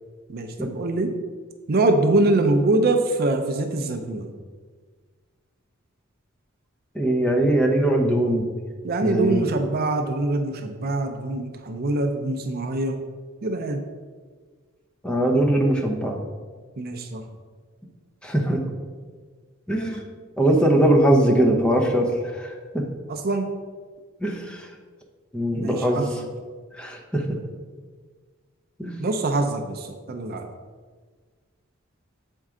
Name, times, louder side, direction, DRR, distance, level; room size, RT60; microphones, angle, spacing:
voice 1, 0.3-1.2 1.7-4.3 8.8-13.0 13.4-13.8 16.8-17.2 23.1-23.5 25.6-26.2 29.0-30.5, right 2 dB, 50° right, 6 dB, 0.5 m, -24 dB
voice 2, 6.9-8.5 9.0-9.5 15.0-16.2 18.2-18.6 19.7-20.1 20.4-22.8 24.2-24.7 25.3-26.0 26.7-27.3 28.8-28.9, right 1 dB, 5° left, 0 dB, 0.7 m, -21 dB
7.3 x 4.5 x 3.7 m, 1.5 s
head